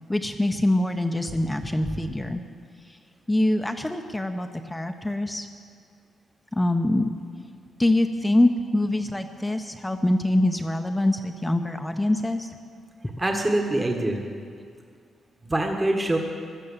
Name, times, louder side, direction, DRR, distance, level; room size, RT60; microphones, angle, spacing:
voice 1, 0.1-2.4 2.9-3.0 3.3-5.5 6.5-7.1 7.8-12.5, left 1 dB, 10° left, 6 dB, 0.8 m, -24 dB
voice 2, 13.2-14.2 15.4-16.2, right 1 dB, 20° right, 2 dB, 1.5 m, -24 dB
16.0 x 12.0 x 7.3 m, 2.2 s
cardioid pair, 95°, 0 cm